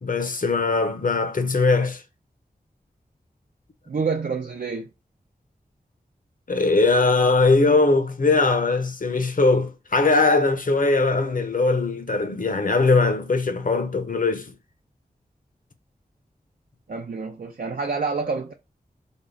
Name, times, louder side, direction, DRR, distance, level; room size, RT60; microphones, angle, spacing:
voice 1, 0.0-2.0 6.5-14.5, left 3 dB, 55° left, 0.8 m, -20 dB
voice 2, 3.9-4.9 16.9-18.5, right 4 dB, 60° right, 0.5 m, -27 dB
3.6 x 2.1 x 3.7 m
cardioid pair, 45°, 16 cm